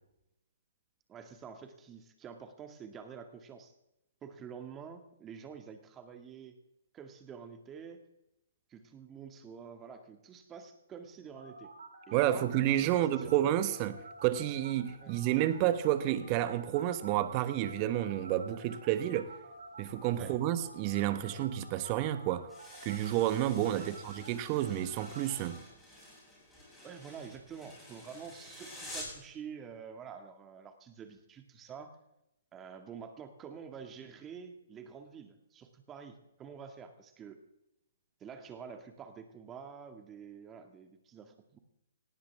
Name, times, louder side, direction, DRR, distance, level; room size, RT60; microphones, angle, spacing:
voice 1, 1.1-3.7 4.2-6.6 6.9-8.0 8.7-11.7 12.1-12.5 12.8-13.5 15.0-15.2 20.2-20.4 23.7-23.9 26.8-31.9 32.5-37.4 38.2-41.6, right 6 dB, 20° right, 2.0 m, -48 dB
sound 1, 11.3-25.5, right 4 dB, 75° right, 6.4 m, -49 dB
voice 2, 12.1-19.3 19.8-22.5 22.8-25.6, right 12 dB, 35° right, 1.3 m, -30 dB
sound 2, 22.5-29.3, left 1 dB, 5° left, 7.3 m, -49 dB
18.5 x 17.5 x 3.5 m
hypercardioid pair, 135°, 0 cm